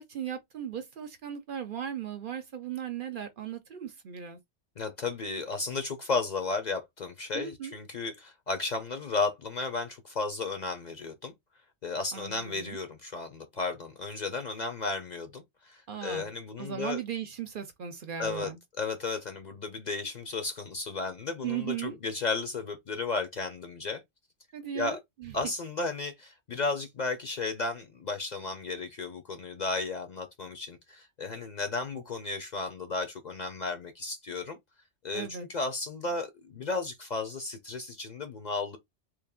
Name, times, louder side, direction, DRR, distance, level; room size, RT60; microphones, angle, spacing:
voice 1, 0.0-4.4 7.3-7.7 12.1-12.8 15.9-16.3 16.6-18.6 21.4-22.0 24.5-25.5 35.1-35.5, right 9 dB, 55° right, 0.7 m, -37 dB
voice 2, 4.8-11.3 11.8-17.0 18.2-18.5 18.8-24.0 24.7-25.0 25.3-34.6 35.0-38.8, left 3 dB, 50° left, 0.6 m, -34 dB
3.2 x 2.5 x 3.6 m
omnidirectional pair, 1.2 m